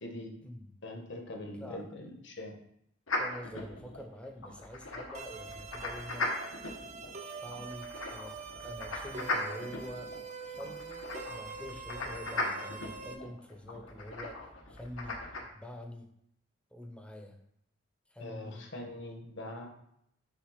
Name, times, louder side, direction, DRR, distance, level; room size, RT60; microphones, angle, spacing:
voice 1, 0.8-2.5 18.2-19.7, left 1 dB, 65° left, 1 dB, 1.3 m, -42 dB
sound 1, 3.1-15.4, left 2 dB, 85° left, 1.2 m, -39 dB
voice 2, 3.1-6.3 7.4-14.4 14.7-15.2 15.5-16.1 16.7-17.4 18.1-18.7, equal, 5° left, 4 dB, 0.8 m, -46 dB
sound 2, 5.1-13.1, right 5 dB, 40° right, 0.7 m, -44 dB
6.5 x 3.5 x 5.0 m, 0.75 s
head